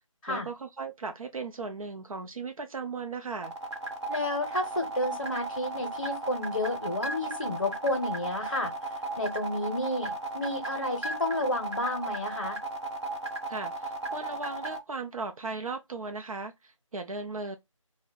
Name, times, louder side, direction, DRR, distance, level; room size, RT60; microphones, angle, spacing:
voice 1, 0.3-3.5 13.5-17.6, right 4 dB, 85° right, 0.5 m, -37 dB
sound 1, 3.4-14.8, right 2 dB, 55° right, 0.9 m, -35 dB
voice 2, 4.1-8.7 9.2-12.6, left 1 dB, 40° left, 0.6 m, -31 dB
2.5 x 2.1 x 3.8 m
figure-of-eight pair, 175°, 17 cm